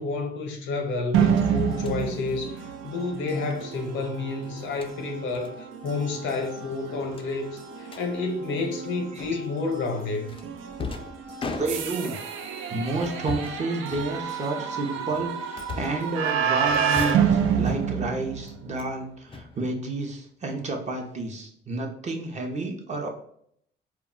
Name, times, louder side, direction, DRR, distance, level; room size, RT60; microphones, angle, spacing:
voice 1, 0.0-10.4, left 3 dB, 75° left, 4 dB, 0.7 m, -30 dB
sound 1, 1.1-18.9, right 7 dB, 80° right, 0.4 m, -29 dB
sound 2, 1.7-2.0 3.5-3.7 4.6-4.9 5.3-5.5 5.8-6.0 6.3-6.4 7.1-8.1 9.2-9.6 10.3-12.2 13.0-13.6 13.9-14.6 15.1-16.1 16.7-17.3 17.6-18.1 18.4-19.0 19.3-20.1, left 4 dB, 25° left, 0.4 m, -39 dB
voice 2, 11.5-12.2 12.7-23.1, right 2 dB, 35° right, 2 dB, 0.6 m, -30 dB
2.2 x 2.0 x 3.6 m, 0.67 s
cardioid pair, 90°, 20 cm